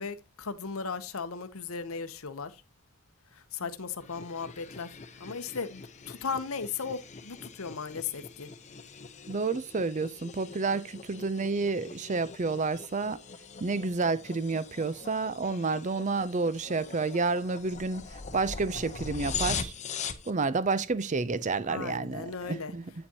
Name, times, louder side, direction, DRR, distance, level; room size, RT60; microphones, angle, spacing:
voice 1, 0.0-2.6 3.5-8.5 16.7-16.8 21.7-22.7, left 5 dB, 70° left, 0.8 m, -37 dB
sound 1, 4.0-20.3, left 5 dB, 30° left, 0.8 m, -42 dB
voice 2, 9.3-13.2 13.6-18.0 18.3-19.7 20.3-22.9, right 4 dB, 35° right, 0.5 m, -30 dB
8.8 x 7.1 x 2.9 m
head